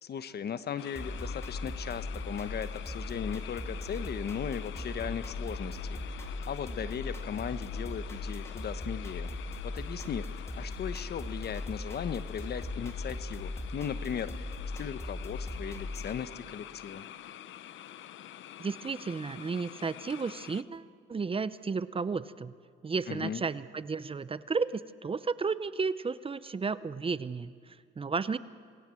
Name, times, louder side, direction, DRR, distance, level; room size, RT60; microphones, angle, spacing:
voice 1, 0.0-9.3 9.6-17.1 23.1-23.4, left 8 dB, 55° left, 13 dB, 1.1 m, -37 dB
sound 1, 0.8-20.6, left 11 dB, 75° left, 0.8 m, -47 dB
sound 2, 1.0-16.2, left 2 dB, 15° left, 3.1 m, -39 dB
voice 2, 18.6-22.5 22.8-28.4, right 4 dB, 30° right, 15 dB, 0.7 m, -33 dB
27.5 x 19.5 x 7.7 m, 2.1 s
cardioid pair, 90°, 20 cm